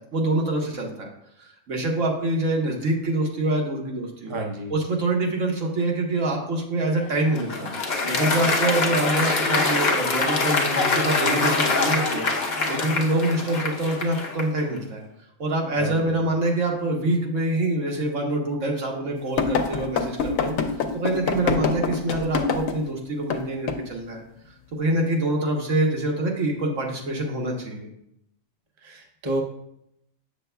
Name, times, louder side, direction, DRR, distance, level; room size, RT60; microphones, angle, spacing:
voice 1, 0.1-1.1 1.4-4.4 4.7-7.7 8.1-15.0 15.4-20.5 20.9-24.2 24.7-27.9, right 1 dB, 70° right, 0 dB, 1.5 m, -25 dB
voice 2, 4.3-4.7 15.8-16.1 28.8-29.4, right 1 dB, 25° right, 1 dB, 0.7 m, -30 dB
Applause, 7.0-14.6, left 3 dB, 40° left, 0.8 m, -24 dB
sound 1, 19.4-22.8 23.3-23.4 23.7-23.9, left 5 dB, 85° left, 1.0 m, -25 dB
7.7 x 6.7 x 2.2 m, 0.78 s
omnidirectional pair, 1.4 m